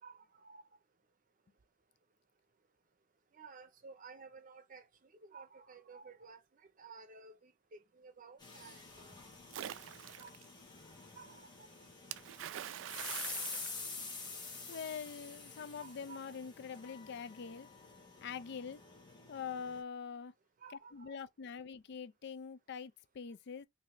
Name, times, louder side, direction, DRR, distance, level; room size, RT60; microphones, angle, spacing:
voice 1, 0.0-0.7 3.3-9.2 10.2-10.4 11.1-11.7 13.4-13.5 14.7-14.8 15.8-16.5 20.6-21.2, right 4 dB, 45° right, 0.7 m, -55 dB
sound 1, 8.4-19.8, left 4 dB, 25° left, 1.5 m, -48 dB
Splash splatter, 9.5-10.4 12.1-14.5, right 11 dB, 70° right, 0.3 m, -45 dB
voice 2, 14.7-17.7 18.2-18.8 19.3-20.3 20.7-23.6, left 6 dB, 60° left, 0.4 m, -44 dB
3.2 x 2.7 x 3.8 m
head